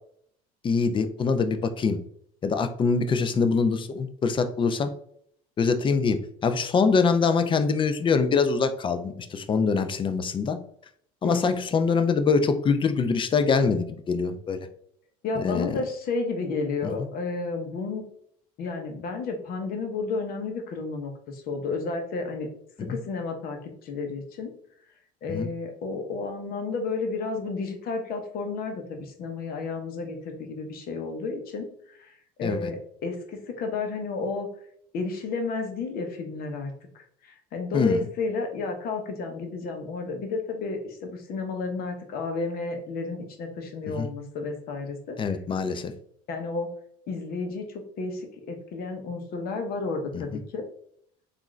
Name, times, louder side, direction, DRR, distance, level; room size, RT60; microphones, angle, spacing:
voice 1, 0.6-2.0 2.4-4.9 5.6-10.6 11.2-14.7 15.4-15.8 16.8-16.9 22.8-23.0 25.3-25.5 32.4-32.7 37.7-38.0 44.0-44.1 45.2-45.9, left 5 dB, 30° left, 9 dB, 0.4 m, -24 dB
voice 2, 11.2-11.6 15.2-18.0 18.6-22.5 22.9-24.5 25.2-34.5 34.9-45.2 46.3-46.7 47.1-50.6, left 3 dB, 55° left, 5 dB, 0.9 m, -32 dB
3.6 x 2.5 x 3.1 m, 0.64 s
supercardioid pair, 80°, 18 cm